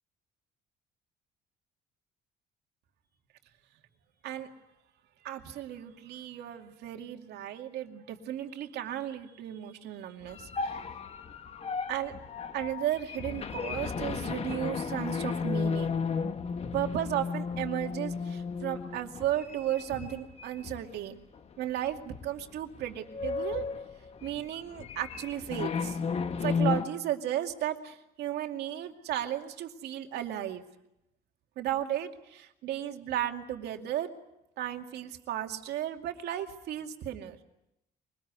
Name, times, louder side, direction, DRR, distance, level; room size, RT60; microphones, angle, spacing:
voice 1, 5.2-10.8 11.9-12.1 12.5-16.0 16.7-21.2 21.6-23.7 24.2-26.0 26.4-30.6 31.6-34.1 34.6-37.4, right 12 dB, 75° right, 4 dB, 2.4 m, -34 dB
sound 1, 10.3-21.0 21.4-21.5 22.1-22.5 22.8-26.9, left 5 dB, 40° left, 1.3 m, -34 dB
24.0 x 20.0 x 9.6 m, 0.87 s
cardioid pair, 110°, 17 cm